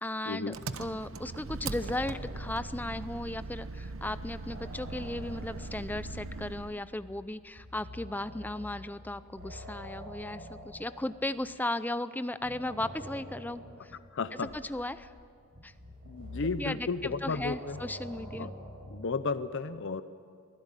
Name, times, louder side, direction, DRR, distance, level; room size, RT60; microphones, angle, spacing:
voice 1, 0.0-14.0 14.5-15.1 15.6-15.7 16.6-18.5, left 1 dB, 10° left, 13 dB, 0.6 m, -36 dB
Engine, 0.5-6.8, right 3 dB, 70° right, 0.9 m, -40 dB
sound 1, 1.8-3.6 3.9-11.9 12.4-19.3, equal, 55° right, 7.1 m, -47 dB
voice 2, 14.1-14.5 16.0-17.8 18.3-18.5 18.9-20.0, left 4 dB, 60° left, 12 dB, 0.7 m, -33 dB
24.0 x 15.5 x 9.1 m, 2.3 s
head